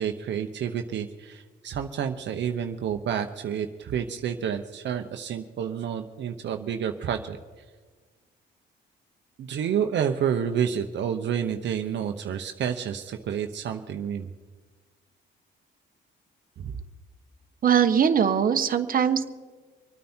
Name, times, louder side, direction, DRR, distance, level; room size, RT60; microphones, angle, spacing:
voice 1, 0.0-7.4 9.4-14.3 16.6-16.8, right 8 dB, 65° right, 5 dB, 0.9 m, -29 dB
voice 2, 17.6-19.2, right 8 dB, 45° right, 7 dB, 1.1 m, -21 dB
25.5 x 9.4 x 4.4 m, 1.4 s
cardioid pair, 90°, 20 cm